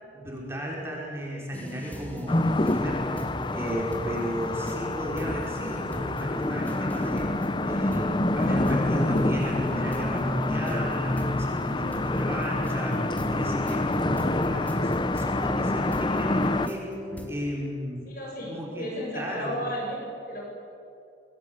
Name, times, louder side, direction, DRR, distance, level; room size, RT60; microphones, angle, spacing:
voice 1, 0.1-3.1 3.5-16.8 17.3-18.1 18.5-19.5, equal, 15° right, -3 dB, 5.3 m, -34 dB
sound 1, 1.5-17.3, equal, 10° left, 2.8 m, -38 dB
sound 2, 2.3-16.7, left 2 dB, 25° left, 0.7 m, -27 dB
voice 2, 18.1-20.4, equal, 50° left, -1 dB, 7.7 m, -34 dB
27.5 x 20.0 x 8.3 m, 2.7 s
head